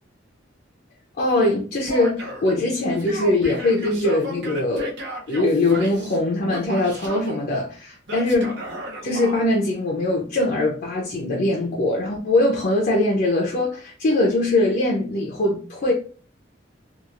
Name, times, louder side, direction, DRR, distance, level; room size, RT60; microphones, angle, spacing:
voice 1, 1.2-4.9 5.3-8.5 9.0-15.9, left 2 dB, 55° left, 0.5 m, -22 dB
Male speech man speaking / Yell, 1.9-2.5 2.9-6.2 6.5-7.4 8.1-9.4, right 1 dB, 65° right, 0.7 m, -34 dB
2.9 x 2.4 x 2.4 m
head